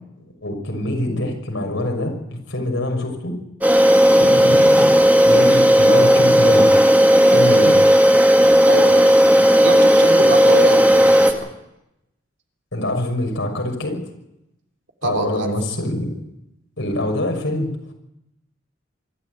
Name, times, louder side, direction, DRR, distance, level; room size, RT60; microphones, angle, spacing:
voice 1, 0.4-3.4 4.2-4.9 5.2-6.7 7.3-7.8 12.7-14.0 15.0-16.1 16.8-17.7, left 1 dB, 80° left, 2 dB, 6.1 m, -24 dB
sound 1, 3.6-11.3, equal, 10° right, 2.1 m, -13 dB
voice 2, 8.6-9.1 9.6-11.5 15.0-15.5, right 2 dB, 65° right, 2 dB, 3.4 m, -25 dB
24.5 x 13.5 x 9.5 m, 0.89 s
head